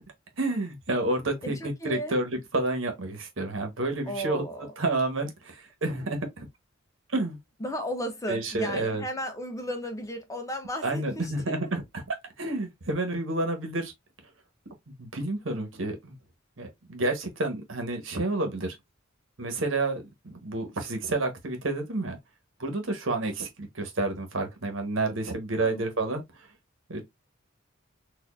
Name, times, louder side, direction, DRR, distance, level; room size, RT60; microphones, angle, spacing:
voice 1, 0.4-4.4 4.8-6.5 7.1-7.4 8.3-9.0 10.8-13.9 15.0-16.2 16.6-18.7 19.4-22.2 22.6-26.2 26.9-27.1, right 2 dB, 70° right, 1.1 m, -30 dB
voice 2, 1.4-2.2 4.1-4.7 7.6-11.7 25.6-25.8, equal, 15° left, 0.6 m, -35 dB
4.2 x 2.5 x 2.4 m
head